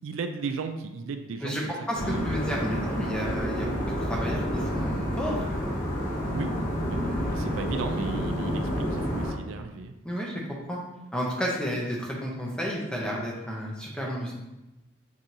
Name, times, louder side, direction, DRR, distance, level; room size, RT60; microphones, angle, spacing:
voice 1, 0.0-1.7 2.0-2.5 6.3-6.5 6.9-10.0, right 4 dB, 80° right, 7 dB, 0.3 m, -35 dB
voice 2, 1.4-5.6 10.0-10.4 10.7-10.8 11.1-14.3, equal, 5° left, -3 dB, 0.6 m, -31 dB
sound 1, 1.9-9.3, equal, 45° left, 0.8 m, -29 dB
6.0 x 2.6 x 2.7 m, 1.0 s
head